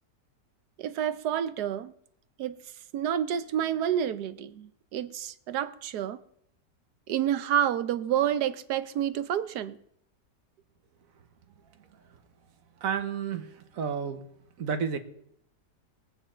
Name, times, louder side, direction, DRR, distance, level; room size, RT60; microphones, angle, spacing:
voice 1, 0.8-1.9 2.4-2.6 2.9-6.2 7.1-9.8, right 10 dB, 70° right, 1.3 m, -29 dB
voice 2, 12.8-14.2 14.6-15.0, right 7 dB, 55° right, 1.5 m, -31 dB
21.5 x 9.0 x 4.4 m
omnidirectional pair, 1.9 m